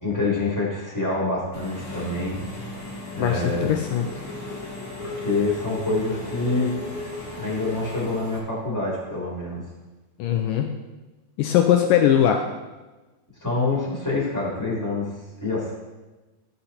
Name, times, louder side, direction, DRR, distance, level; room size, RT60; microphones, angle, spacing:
voice 1, 0.0-2.4 3.1-3.7 5.0-6.8 7.3-9.7 13.4-15.1 15.4-15.7, left 2 dB, 5° left, -5 dB, 2.4 m, -26 dB
Engine / Mechanisms, 1.5-8.4, left 2 dB, 60° left, 0.9 m, -35 dB
voice 2, 3.2-4.1 10.2-10.7 11.4-12.4, left 10 dB, 90° left, 4 dB, 1.9 m, -20 dB
15.5 x 5.4 x 4.3 m, 1.2 s
omnidirectional pair, 4.7 m